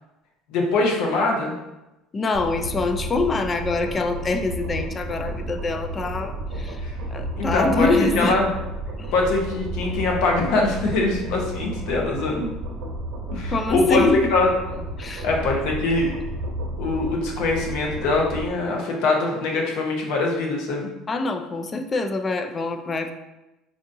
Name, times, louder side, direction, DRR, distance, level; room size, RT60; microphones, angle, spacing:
voice 1, 0.5-1.5 6.8-6.9 7.4-7.9 8.1-8.5 9.1-12.5 13.3-14.0 14.3-14.5 15.2-16.1 16.8-20.9, left 3 dB, 70° left, 0 dB, 0.8 m, -23 dB
voice 2, 2.1-6.8 7.1-8.4 9.0-9.1 13.5-14.3 15.0-15.3 21.1-23.1, left 3 dB, 25° left, 7 dB, 0.4 m, -25 dB
sound 1, 2.3-18.5, right 1 dB, 70° right, 0.8 m, -32 dB
4.7 x 2.7 x 2.6 m, 0.97 s
supercardioid pair, 105°, 0 cm